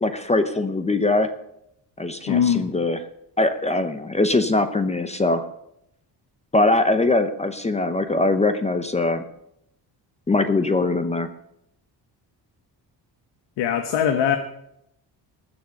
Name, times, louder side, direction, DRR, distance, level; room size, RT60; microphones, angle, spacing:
voice 1, 0.0-1.3 2.0-3.0 3.4-5.4 6.5-9.2 10.3-11.3, left 2 dB, 15° left, 9 dB, 0.7 m, -22 dB
voice 2, 2.3-2.7 13.6-14.4, left 8 dB, 80° left, 6 dB, 1.3 m, -21 dB
20.0 x 7.1 x 6.5 m, 0.79 s
cardioid pair, 150°, 41 cm